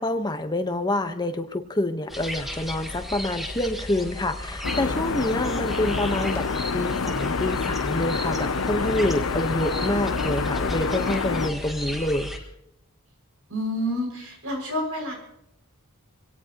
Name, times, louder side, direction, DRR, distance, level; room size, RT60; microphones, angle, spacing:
voice 1, 0.0-6.5 6.7-12.3, left 1 dB, 20° left, 7 dB, 1.1 m, -27 dB
sound 1, 2.1-12.4, left 1 dB, ahead, 1.7 m, -35 dB
sound 2, 4.6-11.5, left 4 dB, 70° left, 0.7 m, -27 dB
voice 2, 13.5-15.1, equal, 70° right, -1 dB, 6.1 m, -28 dB
25.5 x 17.5 x 3.0 m, 0.83 s
head